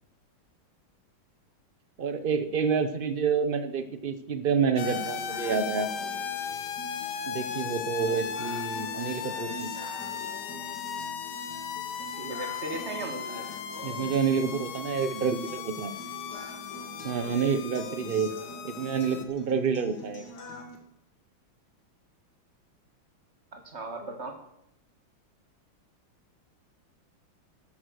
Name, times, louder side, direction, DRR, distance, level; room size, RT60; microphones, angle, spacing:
voice 1, 2.0-5.9 7.3-9.7 13.8-15.9 17.0-18.3 18.6-20.2, right 6 dB, 50° right, 10 dB, 0.6 m, -28 dB
sound 1, 4.8-19.2, left 8 dB, 80° left, 1.8 m, -37 dB
sound 2, 4.8-20.8, equal, 55° left, 2.3 m, -44 dB
voice 2, 12.0-13.5 23.5-24.4, right 2 dB, 35° right, 5 dB, 1.9 m, -37 dB
13.0 x 10.5 x 6.4 m, 0.78 s
omnidirectional pair, 2.2 m